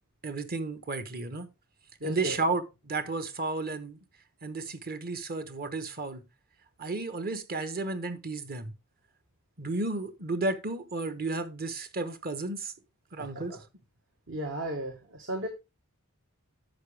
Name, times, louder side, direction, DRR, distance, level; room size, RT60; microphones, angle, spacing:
voice 1, 0.2-1.5 2.0-4.0 4.4-6.2 6.8-8.7 9.6-12.7 13.1-13.6, right 3 dB, 45° right, 1.1 m, -33 dB
voice 2, 2.0-2.4 13.2-13.6 14.3-15.5, right 1 dB, 60° right, 1.6 m, -35 dB
10.5 x 7.0 x 3.4 m
head